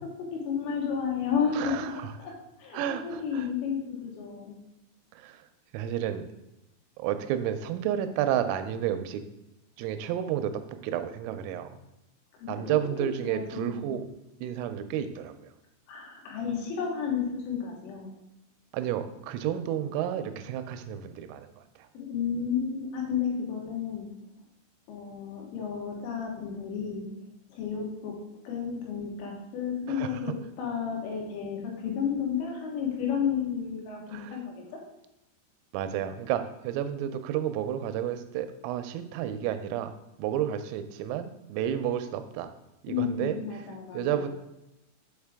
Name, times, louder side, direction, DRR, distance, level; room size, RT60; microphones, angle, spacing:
voice 1, 0.0-1.7 2.2-2.3 2.6-4.6 12.3-12.6 13.0-13.9 15.9-18.1 22.0-24.1 24.9-27.1 27.5-28.1 28.5-34.6 42.9-44.3, left 7 dB, 75° left, -1 dB, 3.6 m, -32 dB
voice 2, 1.5-2.1 2.7-3.5 5.1-5.5 5.7-6.3 7.0-9.2 9.8-11.8 12.5-14.1 14.4-15.5 18.7-21.9 29.9-30.2 34.1-34.4 35.7-39.9 40.2-42.5 42.8-43.7 43.9-44.3, right 10 dB, 90° right, 10 dB, 3.3 m, -31 dB
7.3 x 5.0 x 3.5 m, 0.90 s
omnidirectional pair, 5.9 m